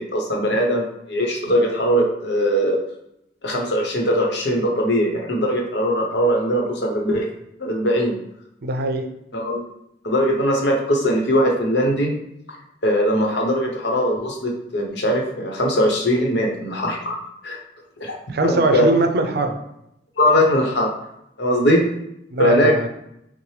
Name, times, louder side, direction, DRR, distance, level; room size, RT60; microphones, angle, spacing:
voice 1, 0.0-2.8 3.4-7.2 7.6-8.1 9.3-9.6 10.0-12.1 12.8-17.2 17.4-17.6 18.0-18.1 18.4-18.9 20.2-20.9 21.4-21.8 22.4-22.9, equal, 65° left, 0 dB, 0.9 m, -20 dB
voice 2, 8.6-9.1 18.3-19.6 22.3-22.9, right 2 dB, 60° right, 6 dB, 0.5 m, -21 dB
5.9 x 2.0 x 3.2 m, 0.81 s
head